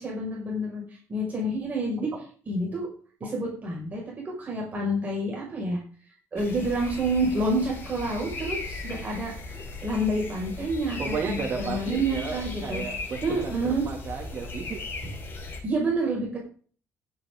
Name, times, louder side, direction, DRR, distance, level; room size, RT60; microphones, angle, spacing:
voice 1, 0.0-2.1 2.5-2.9 3.2-5.8 6.3-9.3 9.8-11.4 11.6-12.8 13.2-13.8 15.6-16.4, right 1 dB, 30° right, -3 dB, 5.7 m, -28 dB
sound 1, 6.4-15.6, left 3 dB, 40° left, 5.4 m, -37 dB
voice 2, 11.0-14.8, right 5 dB, 45° right, 0 dB, 2.5 m, -33 dB
15.5 x 9.9 x 3.8 m, 0.42 s
cardioid pair, 160°, 5 cm